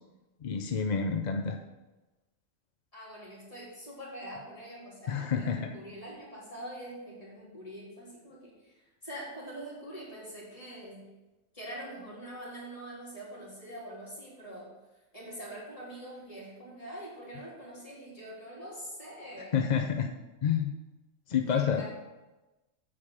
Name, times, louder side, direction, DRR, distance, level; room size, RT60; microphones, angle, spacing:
voice 1, 0.4-1.6 5.1-5.7 19.5-20.1 20.4-20.7 21.3-21.8, left 7 dB, 50° left, 5 dB, 0.5 m, -28 dB
voice 2, 2.9-11.0 11.5-14.7 15.1-19.6 21.4-21.9, right 1 dB, 25° left, -7 dB, 3.6 m, -44 dB
8.7 x 5.1 x 7.1 m, 1.1 s
omnidirectional pair, 1.4 m